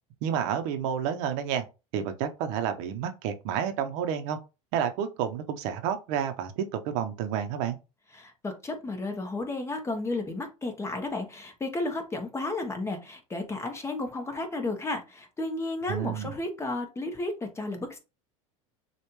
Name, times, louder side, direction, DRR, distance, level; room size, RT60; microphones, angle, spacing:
voice 1, 0.2-1.6 1.9-4.4 4.7-7.8 15.9-16.3, right 8 dB, 65° right, 0.8 m, -30 dB
voice 2, 8.1-18.0, left 2 dB, 15° left, 1.1 m, -33 dB
6.6 x 2.5 x 3.1 m
supercardioid pair, 115°, 18 cm